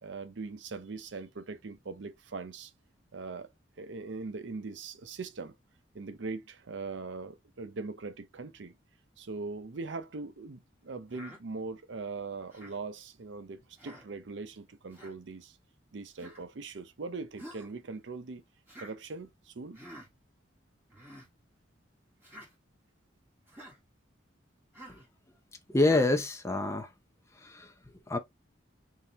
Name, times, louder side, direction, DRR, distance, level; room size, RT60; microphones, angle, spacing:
voice 1, 0.0-2.7 3.1-3.5 3.8-5.5 5.9-8.7 9.2-15.6 15.9-18.4 18.8-19.8, right 4 dB, 70° right, 0.6 m, -41 dB
Human voice, 11.1-11.4 12.5-12.8 13.8-14.1 14.9-15.1 16.2-16.4 17.4-17.7 18.7-18.9 19.7-20.1 20.9-21.3 22.2-22.5 23.5-23.8 24.7-25.1 25.8-26.1, equal, 10° right, 1.5 m, -48 dB
voice 2, 25.7-26.9 27.4-27.7 28.1-28.2, left 2 dB, 15° left, 0.6 m, -27 dB
3.7 x 2.8 x 2.9 m
head